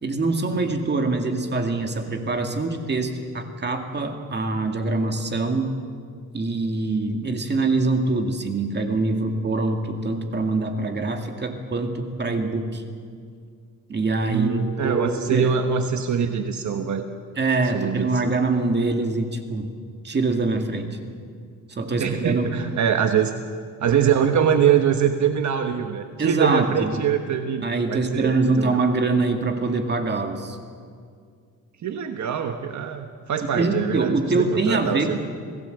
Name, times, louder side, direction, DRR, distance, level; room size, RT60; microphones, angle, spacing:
voice 1, 0.0-5.7 6.3-12.8 13.9-15.5 17.4-19.7 20.0-20.9 21.7-22.5 26.2-26.9 27.6-30.6 33.5-35.1, right 3 dB, 30° right, 5 dB, 2.2 m, -24 dB
voice 2, 14.3-17.1 17.7-18.3 22.0-23.3 23.8-28.8 31.8-35.2, right 8 dB, 55° right, 6 dB, 1.3 m, -23 dB
28.0 x 17.5 x 8.0 m, 2.1 s
cardioid pair, 145°, 34 cm